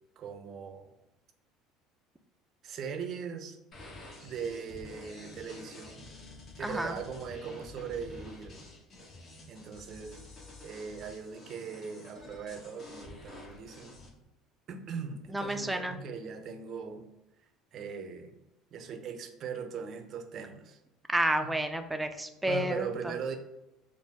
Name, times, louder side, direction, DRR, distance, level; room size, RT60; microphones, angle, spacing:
voice 1, 0.2-0.9 2.6-3.6 4.2-6.1 6.6-8.6 9.5-10.2 10.6-14.0 14.7-17.1 17.7-18.4 18.7-20.8 21.4-21.5 22.4-23.4, right 6 dB, 50° right, 7 dB, 0.6 m, -40 dB
sound 1, 3.7-14.1, left 2 dB, 45° left, 1.5 m, -49 dB
voice 2, 6.6-7.0 15.3-16.0 21.1-23.1, right 1 dB, 10° right, 7 dB, 0.5 m, -30 dB
4.4 x 2.2 x 3.4 m, 0.93 s
hypercardioid pair, 70°, 0 cm